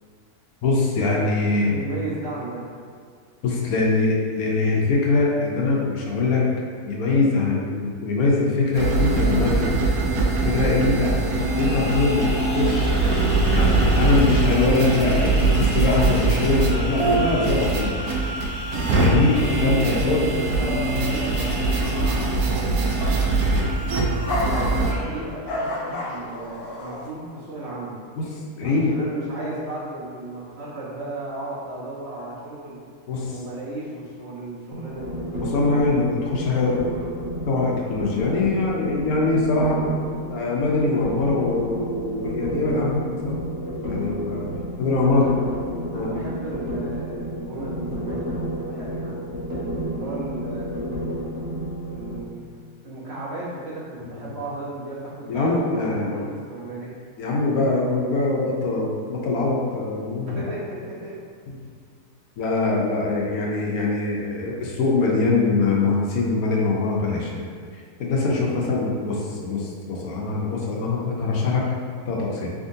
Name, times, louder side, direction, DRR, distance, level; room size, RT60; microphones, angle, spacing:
voice 1, 0.6-1.7 3.4-6.4 6.8-9.9 10.4-12.9 13.5-13.7 14.0-18.0 18.9-20.3 28.2-28.3 28.6-28.9 29.4-29.5 33.1-33.4 35.4-36.8 37.5-39.8 40.3-43.4 43.8-44.4 44.8-45.2 45.9-46.1 54.1-54.2 55.3-56.1 57.2-60.4 61.5-61.6 62.4-67.4 67.7-71.7 72.1-72.5, left 3 dB, 75° left, -3 dB, 1.1 m, -23 dB
voice 2, 1.5-2.6 19.9-23.6 24.5-28.0 28.6-32.8 33.3-35.2 45.0-45.5 45.9-49.5 49.8-50.7 51.8-52.5 52.8-56.9 60.3-61.2, right 2 dB, 50° right, -8 dB, 1.0 m, -35 dB
sound 1, 8.7-24.9, right 2 dB, 75° right, 1.1 m, -22 dB
sound 2, 11.4-27.1, left 1 dB, 55° left, 0.7 m, -34 dB
sound 3, 34.7-52.2, equal, 20° right, 0.7 m, -31 dB
4.3 x 3.6 x 2.7 m, 2.1 s
omnidirectional pair, 1.7 m